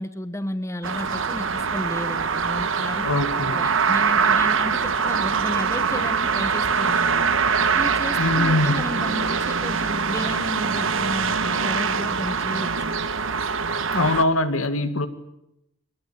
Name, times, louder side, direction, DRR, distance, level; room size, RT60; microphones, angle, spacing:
voice 1, 0.0-3.1 3.5-7.3 7.7-12.9, left 1 dB, 15° left, 12 dB, 0.9 m, -33 dB
sound 1, 0.8-14.2, right 5 dB, 70° right, 1.2 m, -23 dB
voice 2, 3.0-3.6 8.2-8.8 13.9-15.1, left 2 dB, 85° left, 10 dB, 2.1 m, -22 dB
24.0 x 20.0 x 8.7 m, 0.86 s
head